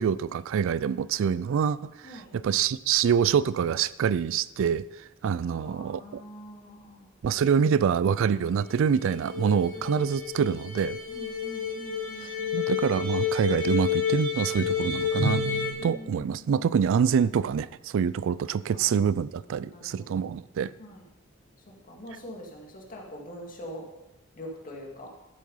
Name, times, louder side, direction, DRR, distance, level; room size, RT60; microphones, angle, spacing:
voice 1, 0.0-4.8 5.2-6.2 7.2-11.0 12.2-15.4 15.8-20.7, right 7 dB, 65° right, 18 dB, 0.3 m, -26 dB
voice 2, 5.4-7.1 9.7-9.9 11.1-12.8 15.8-16.8 18.7-19.0 19.5-20.3 20.8-21.0 21.7-23.9 24.4-25.1, equal, 40° left, -1 dB, 2.2 m, -44 dB
sound 1, 8.4-8.5 8.7-8.8 9.0-15.7, left 6 dB, 85° right, 4.3 m, -30 dB
12.5 x 7.6 x 5.5 m, 1.0 s
head